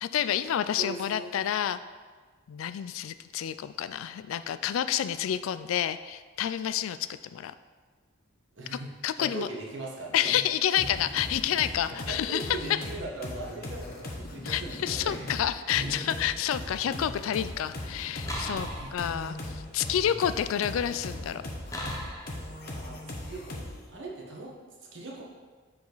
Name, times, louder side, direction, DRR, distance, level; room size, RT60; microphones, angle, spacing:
voice 1, 0.0-1.8 2.5-7.5 9.0-9.5 10.1-12.5 14.4-21.4, left 10 dB, 85° left, 13 dB, 0.3 m, -29 dB
voice 2, 0.7-1.4 8.6-8.9 9.1-10.4 10.8-11.1 11.9-15.3 15.7-16.0 18.6-19.0 22.3-24.5 24.9-25.2, right 2 dB, 65° right, -2 dB, 1.3 m, -40 dB
sound 1, 10.8-23.9, left 1 dB, 50° left, 0.8 m, -39 dB
sound 2, 18.3-19.5 21.7-22.5, equal, 15° left, 0.7 m, -37 dB
7.1 x 5.0 x 3.9 m, 1.4 s
head